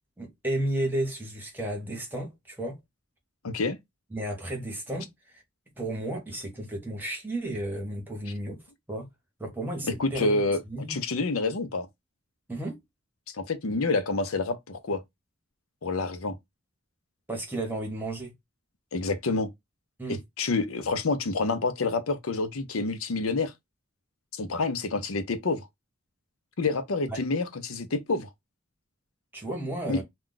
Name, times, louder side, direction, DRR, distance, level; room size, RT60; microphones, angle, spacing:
voice 1, 0.2-2.8 4.1-5.1 5.8-8.6 8.9-9.1 9.4-10.4 10.7-11.0 12.5-12.8 17.3-18.3 20.0-20.2 27.1-27.2 29.3-30.0, right 1 dB, 10° right, 1.0 m, -33 dB
voice 2, 3.4-3.8 10.0-10.6 10.9-11.9 13.3-15.0 15.8-16.4 18.9-19.5 20.4-23.5 24.4-25.7 26.6-28.3 29.9-30.0, left 3 dB, 85° left, 0.7 m, -28 dB
2.3 x 2.3 x 3.8 m
head